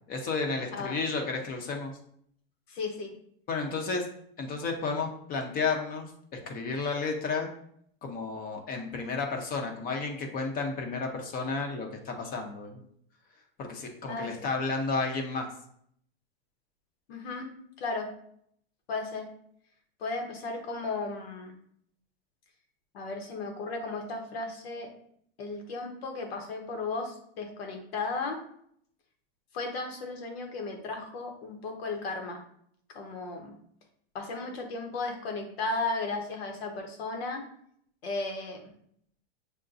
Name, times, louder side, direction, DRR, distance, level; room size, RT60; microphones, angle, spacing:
voice 1, 0.1-1.9 3.5-4.1 4.4-6.1 6.5-7.5 8.0-12.8 13.6-15.5, left 4 dB, 30° left, 3 dB, 0.7 m, -32 dB
voice 2, 2.7-3.1 14.1-14.3 17.1-17.5 17.8-18.1 18.9-19.3 20.0-21.5 22.9-24.9 25.4-28.4 29.5-32.4 32.9-33.5 34.1-37.4 38.0-38.6, left 3 dB, 80° left, 3 dB, 1.1 m, -35 dB
6.6 x 2.2 x 2.6 m, 0.67 s
supercardioid pair, 130°, 30 cm